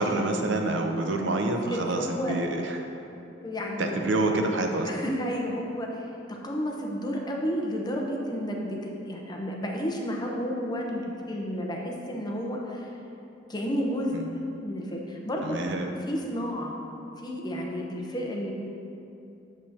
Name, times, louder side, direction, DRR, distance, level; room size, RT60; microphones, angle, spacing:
voice 1, 0.0-2.8 3.8-4.9 14.1-14.3 15.4-15.9, right 2 dB, 70° right, 3 dB, 0.6 m, -27 dB
voice 2, 1.6-2.4 3.4-4.3 4.8-12.9 13.5-15.6 16.0-16.8 17.2-18.5, equal, 20° left, -1 dB, 0.8 m, -32 dB
8.6 x 7.3 x 2.8 m, 2.8 s
head